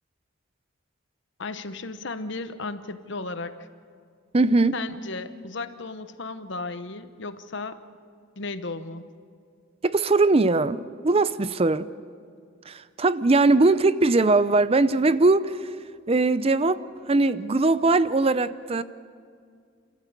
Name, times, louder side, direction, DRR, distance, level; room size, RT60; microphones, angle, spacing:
voice 1, 1.4-3.5 4.7-7.8 8.4-9.1, left 3 dB, 60° left, 11 dB, 1.0 m, -35 dB
voice 2, 4.3-4.7 9.8-11.9 12.7-15.7 16.1-18.8, right 3 dB, 30° right, 15 dB, 0.5 m, -21 dB
30.0 x 14.0 x 8.2 m, 2.2 s
head